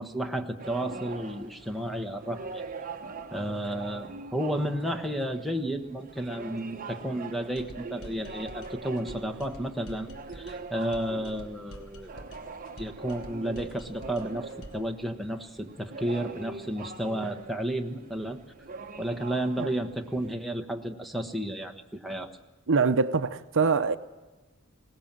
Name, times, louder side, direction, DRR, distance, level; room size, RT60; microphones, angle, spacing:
voice 1, 0.0-2.6 3.3-10.1 10.3-12.2 12.8-18.4 19.0-22.3, right 1 dB, ahead, 1.2 m, -32 dB
sound 1, 0.6-20.4, right 4 dB, 40° right, 1.0 m, -43 dB
sound 2, 7.6-14.9, equal, 70° left, 1.6 m, -47 dB
voice 2, 22.7-24.0, right 4 dB, 60° right, 0.7 m, -24 dB
21.0 x 18.5 x 7.5 m
head